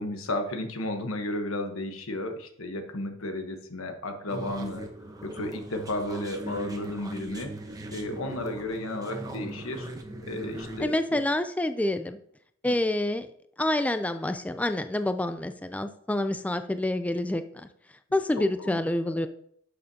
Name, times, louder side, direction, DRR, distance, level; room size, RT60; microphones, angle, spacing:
voice 1, 0.0-4.9 5.2-7.5 7.9-9.9 10.2-11.2 12.6-12.7 18.6-18.8, left 1 dB, 90° left, 6 dB, 1.2 m, -33 dB
sound 1, 4.3-10.8, right 1 dB, 20° right, 1.0 m, -39 dB
voice 2, 10.8-12.2 12.6-13.3 13.6-17.7 18.1-19.3, left 1 dB, 5° left, 9 dB, 0.3 m, -27 dB
11.5 x 6.7 x 2.8 m, 0.67 s
head